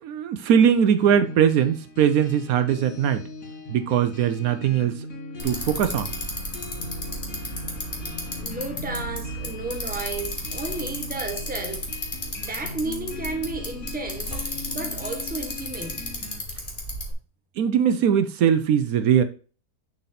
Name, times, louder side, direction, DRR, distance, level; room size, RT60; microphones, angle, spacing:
voice 1, 0.0-3.3 3.7-5.1 5.4-6.1 17.6-19.2, right 8 dB, 75° right, 1.1 m, -21 dB
sound 1, 1.0-16.4, left 2 dB, 65° left, 2.0 m, -40 dB
Bicycle, 5.4-17.1, left 1 dB, 35° left, 2.2 m, -33 dB
voice 2, 8.4-11.9 12.4-16.1, right 3 dB, 5° right, 0.9 m, -33 dB
7.2 x 4.1 x 4.2 m
omnidirectional pair, 1.6 m